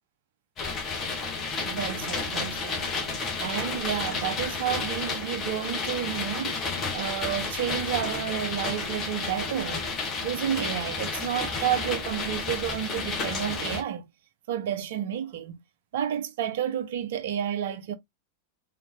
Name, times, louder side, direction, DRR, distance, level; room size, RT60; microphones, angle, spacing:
sound 1, 0.6-13.8, left 4 dB, 30° left, 1.7 m, -31 dB
voice 1, 1.6-2.8 3.4-6.6 6.9-9.9 10.2-14.1 14.5-15.6 15.9-17.9, right 10 dB, 55° right, 0.5 m, -30 dB
4.0 x 3.2 x 2.3 m
figure-of-eight pair, 90°, 0 cm